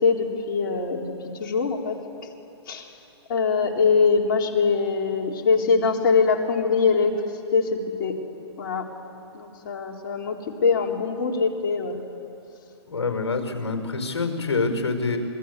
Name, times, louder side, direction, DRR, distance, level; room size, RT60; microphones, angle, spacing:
voice 1, 0.0-1.0 1.4-1.9 2.7-2.9 3.3-7.1 7.5-8.1 8.6-8.8 9.3-12.0, left 5 dB, 50° left, 1 dB, 3.9 m, -22 dB
voice 2, 12.9-15.2, left 4 dB, 75° left, 5 dB, 5.4 m, -26 dB
27.0 x 22.0 x 8.3 m, 2.8 s
hypercardioid pair, 130°, 14 cm